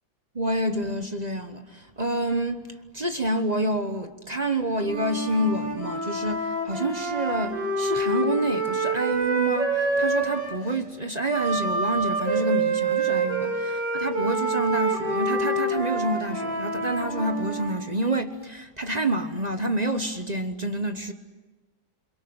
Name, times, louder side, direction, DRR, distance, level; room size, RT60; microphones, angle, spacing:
voice 1, 0.3-2.6 2.9-21.1, right 1 dB, 30° right, 0.9 m, -28 dB
Wind instrument woodwind instrument, 4.8-10.6 11.3-17.8, right 2 dB, 65° right, 7.7 m, -27 dB
29.0 x 22.0 x 8.8 m
omnidirectional pair, 2.1 m